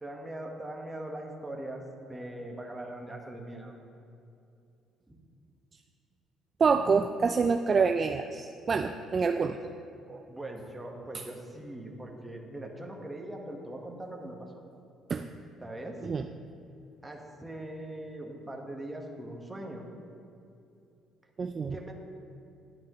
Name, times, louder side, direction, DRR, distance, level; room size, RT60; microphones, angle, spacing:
voice 1, 0.0-3.8 5.1-5.2 10.3-14.5 15.6-16.1 17.0-19.8 21.7-21.9, right 1 dB, 10° right, 1 dB, 1.3 m, -41 dB
voice 2, 6.6-9.6 10.1-10.2 15.1-15.3 16.0-16.3 21.4-21.8, right 5 dB, 35° right, 6 dB, 0.3 m, -27 dB
11.0 x 10.5 x 3.0 m, 2.6 s
cardioid pair, 105°, 0 cm